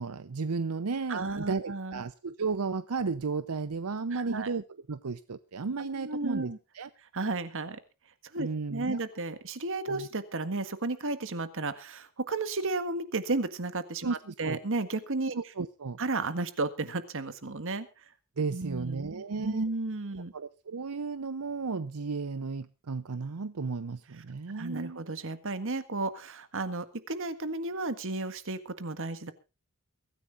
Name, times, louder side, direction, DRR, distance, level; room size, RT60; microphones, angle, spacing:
voice 1, 0.0-6.9 8.4-9.0 9.9-10.1 14.0-14.6 15.3-16.0 18.4-19.7 20.3-25.0, right 4 dB, 85° right, 0.7 m, -34 dB
voice 2, 1.1-2.0 4.1-4.5 5.8-6.6 7.1-7.8 8.3-15.4 16.0-17.9 18.5-20.3 24.5-29.3, right 3 dB, 60° right, 1.7 m, -33 dB
23.0 x 14.0 x 2.5 m
head